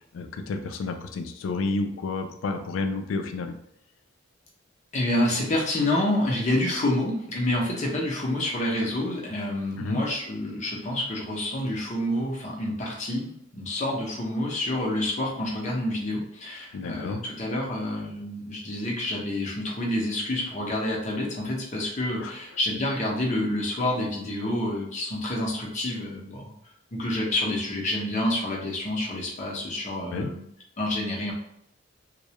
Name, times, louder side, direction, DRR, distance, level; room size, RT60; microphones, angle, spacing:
voice 1, 0.1-3.6 9.8-10.0 16.7-17.2 22.2-22.3 30.1-30.3, left 3 dB, 80° left, 7 dB, 0.3 m, -30 dB
voice 2, 4.9-26.6 26.9-30.4 30.8-31.3, left 1 dB, 35° left, -2 dB, 0.6 m, -28 dB
2.2 x 2.0 x 2.8 m, 0.73 s
head